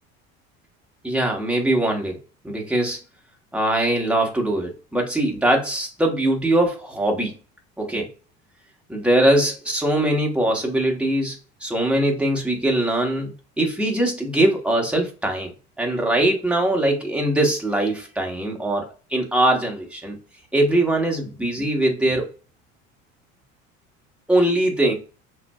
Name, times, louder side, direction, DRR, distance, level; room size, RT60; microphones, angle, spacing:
voice 1, 1.0-2.2 2.4-3.0 3.5-7.3 7.8-8.1 8.9-11.4 11.6-15.5 15.8-20.2 20.5-22.3 24.3-24.9, right 1 dB, 5° right, 1.0 m, -21 dB
5.7 x 2.2 x 2.2 m
supercardioid pair, 110°, 33 cm